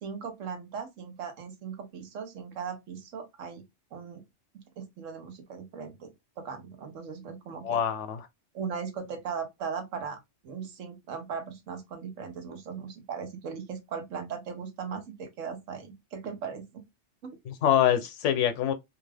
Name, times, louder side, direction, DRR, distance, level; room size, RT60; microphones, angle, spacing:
voice 1, 0.0-3.6 3.9-4.2 4.8-7.8 8.5-16.8 17.2-17.4, right 6 dB, 85° right, 1.2 m, -38 dB
voice 2, 7.6-8.3 17.5-18.7, left 10 dB, 75° left, 0.9 m, -25 dB
2.7 x 2.4 x 3.2 m
omnidirectional pair, 1.3 m